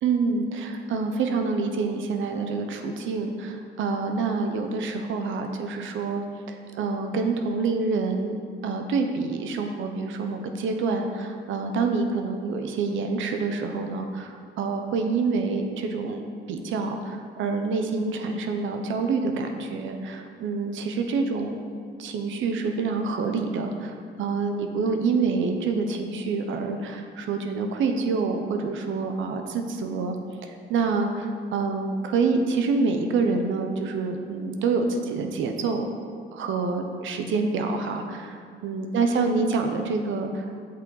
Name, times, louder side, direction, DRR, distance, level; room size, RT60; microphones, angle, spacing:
voice 1, 0.0-6.2 6.5-16.2 16.5-21.6 22.0-30.2 30.4-35.8 36.3-40.5, right 4 dB, 75° right, 5 dB, 0.8 m, -27 dB
7.5 x 5.9 x 3.9 m, 2.1 s
cardioid pair, 90°, 20 cm